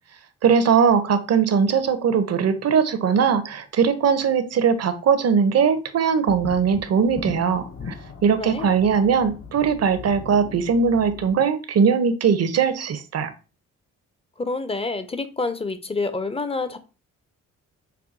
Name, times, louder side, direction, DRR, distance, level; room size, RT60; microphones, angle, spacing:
voice 1, 0.4-7.9 8.2-13.3, right 6 dB, 50° right, 10 dB, 0.7 m, -20 dB
sound 1, 6.3-11.3, left 4 dB, 40° left, 0.9 m, -38 dB
voice 2, 8.4-8.7 14.4-16.8, left 3 dB, 20° left, 10 dB, 0.5 m, -27 dB
5.4 x 2.2 x 2.6 m, 0.33 s
supercardioid pair, 60°, 33 cm